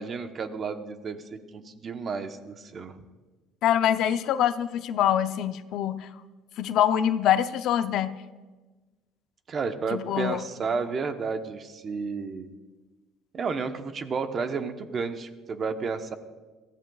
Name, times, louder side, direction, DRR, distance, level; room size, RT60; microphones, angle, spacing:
voice 1, 0.0-3.0 9.5-12.5 13.3-16.2, right 5 dB, 35° right, 8 dB, 0.9 m, -32 dB
voice 2, 3.6-6.1 6.6-8.2 9.9-10.4, left 10 dB, 65° left, 11 dB, 0.6 m, -24 dB
21.5 x 15.0 x 2.4 m, 1.3 s
cardioid pair, 125°, 0 cm